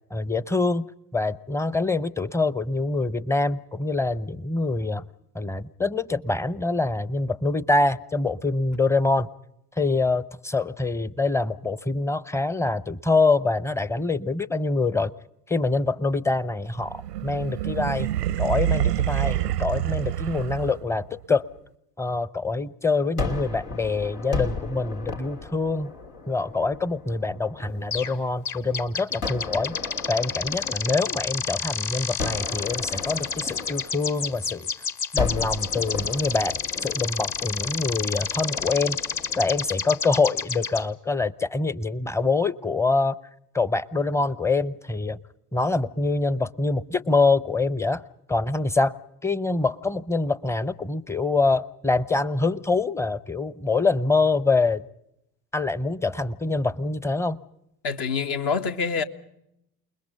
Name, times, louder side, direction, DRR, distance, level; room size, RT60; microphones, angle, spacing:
voice 1, 0.1-0.9 1.1-5.0 5.3-9.3 9.8-15.1 15.5-18.1 18.4-21.5 22.0-25.9 26.3-29.8 30.1-34.7 35.1-39.0 39.4-43.2 43.5-45.2 45.5-48.0 48.3-54.8 55.5-57.4, left 3 dB, 5° left, 0.7 m, -25 dB
sound 1, 16.8-21.0, right 13 dB, 90° right, 0.7 m, -27 dB
Gunshot gunfire, 23.2-28.3 29.2-31.6 32.2-34.7 35.2-40.4, left 4 dB, 80° left, 3.0 m, -35 dB
sound 2, 27.9-28.2 28.5-40.8, left 6 dB, 40° left, 1.6 m, -30 dB
voice 2, 57.8-59.0, left 5 dB, 55° left, 1.7 m, -26 dB
28.5 x 21.0 x 5.3 m
hypercardioid pair, 65°, 46 cm